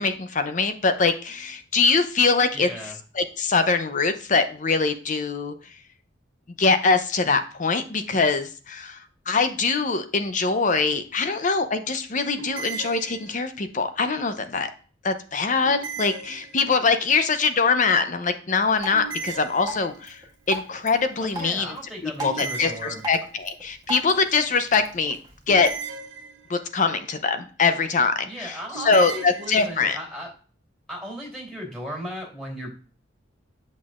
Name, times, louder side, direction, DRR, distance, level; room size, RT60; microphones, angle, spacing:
voice 1, 0.0-5.5 6.6-9.0 9.3-14.7 15.0-20.2 20.5-21.8 22.0-25.2 25.5-25.7 26.5-30.0, left 4 dB, 40° left, 9 dB, 0.7 m, -23 dB
voice 2, 2.5-3.0 21.2-23.0 28.2-30.3 30.9-32.7, equal, 5° left, -3 dB, 3.2 m, -36 dB
sound 1, 12.4-13.7 15.6-17.0 18.9-20.2 22.2-23.5 25.5-26.8 28.7-29.7, right 5 dB, 70° right, 1.4 m, -37 dB
Drip, 18.8-25.8, right 1 dB, 20° right, 1.7 m, -38 dB
7.5 x 6.2 x 2.5 m, 0.38 s
head